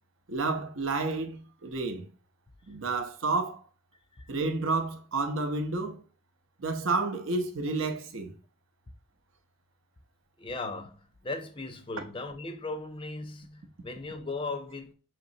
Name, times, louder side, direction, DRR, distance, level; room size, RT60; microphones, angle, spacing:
voice 1, 0.3-2.1 2.7-3.6 4.3-6.0 6.6-8.3, right 3 dB, 70° right, 0.7 m, -30 dB
voice 2, 10.4-14.9, left 3 dB, 25° left, 0.5 m, -37 dB
5.2 x 2.9 x 2.7 m
head